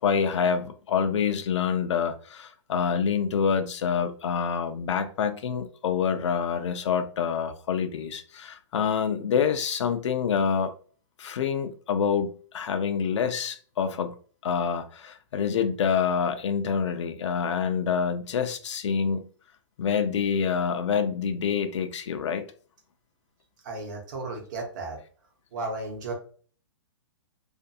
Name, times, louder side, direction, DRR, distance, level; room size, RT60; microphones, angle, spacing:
voice 1, 0.0-10.7 11.2-12.3 12.5-14.1 14.4-19.3 19.8-22.5, left 7 dB, 75° left, 0.4 m, -26 dB
voice 2, 23.6-25.0 25.5-26.1, right 3 dB, 40° right, 0.8 m, -34 dB
2.6 x 2.5 x 2.3 m
hypercardioid pair, 170°, 15 cm